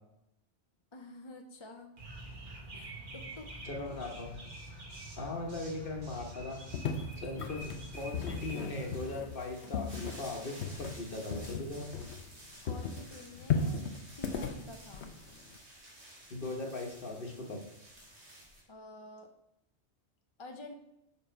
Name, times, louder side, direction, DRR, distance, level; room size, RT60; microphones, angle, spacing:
voice 1, 0.9-1.9 2.7-3.6 12.6-13.8 14.1-15.0 18.7-19.3 20.4-20.7, left 2 dB, 30° left, 3 dB, 0.6 m, -49 dB
sound 1, 2.0-9.0, right 1 dB, 50° right, 1.4 m, -46 dB
voice 2, 3.6-4.4 5.2-6.6 7.2-11.9 16.3-17.6, left 2 dB, 55° left, 2 dB, 1.4 m, -39 dB
sound 2, 6.7-12.4 12.7-15.6, left 5 dB, 80° left, 1.1 m, -36 dB
sound 3, 7.9-18.6, right 1 dB, 80° right, 2.6 m, -54 dB
7.7 x 5.4 x 4.5 m, 0.83 s
omnidirectional pair, 1.1 m